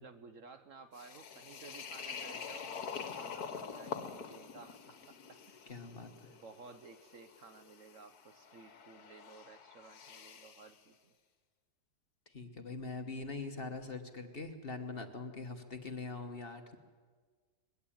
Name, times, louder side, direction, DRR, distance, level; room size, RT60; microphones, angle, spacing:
voice 1, 0.0-5.8 6.3-11.1, right 4 dB, 55° right, 9 dB, 1.1 m, -55 dB
sound 1, 0.9-10.7, left 6 dB, 65° left, 1.7 m, -46 dB
voice 2, 5.7-6.3 12.3-16.8, left 3 dB, 35° left, 6 dB, 1.3 m, -43 dB
21.0 x 16.5 x 8.7 m, 1.5 s
omnidirectional pair, 1.8 m